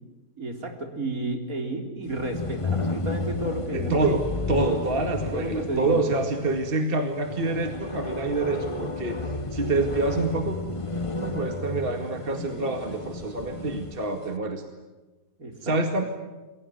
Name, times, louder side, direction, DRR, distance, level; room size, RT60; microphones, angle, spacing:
voice 1, 0.4-4.1 5.2-6.0 12.4-12.7 15.4-15.7, right 1 dB, 60° right, 3 dB, 4.4 m, -32 dB
sound 1, 2.1-14.1, left 2 dB, 20° left, 1.2 m, -32 dB
voice 2, 3.7-10.6 11.2-14.6 15.6-16.0, right 3 dB, 35° right, 5 dB, 2.3 m, -27 dB
28.5 x 22.0 x 9.4 m, 1.2 s
omnidirectional pair, 1.7 m